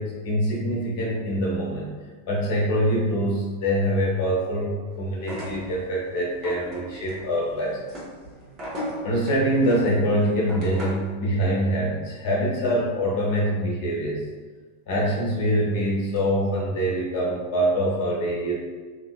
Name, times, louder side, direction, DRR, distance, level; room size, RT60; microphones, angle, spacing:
voice 1, 0.0-1.9 2.3-7.8 9.0-14.2 14.9-18.5, equal, 50° left, -3 dB, 0.7 m, -24 dB
sound 1, 5.2-11.1, equal, 25° right, 0.8 m, -37 dB
2.7 x 2.2 x 2.3 m, 1.4 s
figure-of-eight pair, 90°, 0 cm